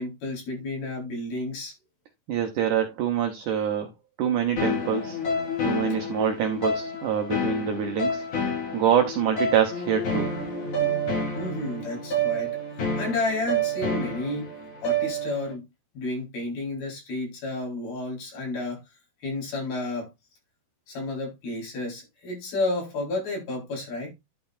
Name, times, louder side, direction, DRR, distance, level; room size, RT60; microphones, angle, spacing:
voice 1, 0.0-1.8 11.4-14.5 14.8-15.6 15.9-18.8 19.2-20.1 20.9-24.1, left 2 dB, 65° left, 6.0 m, -31 dB
voice 2, 2.3-3.9 4.2-5.2 5.6-10.3, right 9 dB, 75° right, 1.9 m, -25 dB
sound 1, 4.6-15.5, equal, 50° left, 5.3 m, -29 dB
11.5 x 5.8 x 2.5 m
omnidirectional pair, 4.7 m